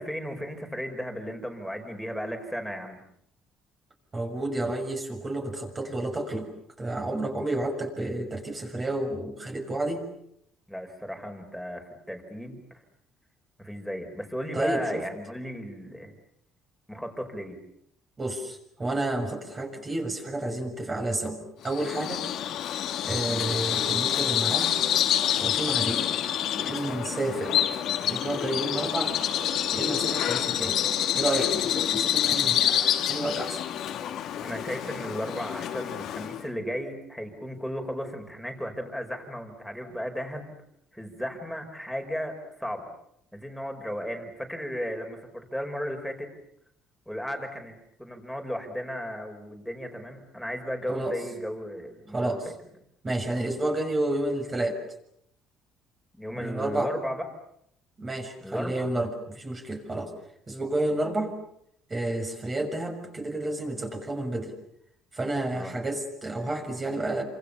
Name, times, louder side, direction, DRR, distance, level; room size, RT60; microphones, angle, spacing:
voice 1, 0.0-3.0 10.7-12.8 13.6-16.1 16.9-17.6 23.3-23.5 34.4-40.5 40.9-42.9 43.3-46.3 47.1-52.4 56.1-57.2 58.4-58.7 65.5-65.7, equal, ahead, 5 dB, 5.4 m, -35 dB
voice 2, 4.1-6.5 6.8-10.1 14.5-15.0 18.2-22.3 23.0-24.8 25.4-26.1 26.6-27.6 28.0-29.1 29.7-30.8 31.1-33.6 50.9-51.2 52.1-52.4 53.0-54.8 56.4-56.9 58.0-60.1 60.5-61.4 61.9-64.5 65.1-67.2, right 2 dB, 20° right, 3 dB, 6.5 m, -30 dB
Bird vocalization bird call bird song, 21.7-36.5, left 10 dB, 65° left, 2.6 m, -27 dB
28.5 x 27.0 x 7.0 m, 0.72 s
cardioid pair, 125°, 0 cm